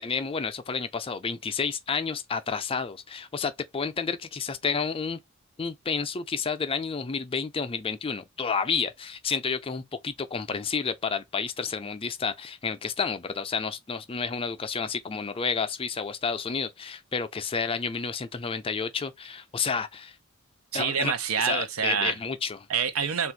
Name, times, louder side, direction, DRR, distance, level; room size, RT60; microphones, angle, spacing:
voice 1, 0.0-5.2 5.6-20.2 20.7-21.1 21.4-22.6, left 5 dB, 25° left, 0.5 m, -30 dB
voice 2, 20.7-22.2 22.7-23.3, right 7 dB, 75° right, 0.7 m, -27 dB
3.5 x 2.5 x 4.6 m
head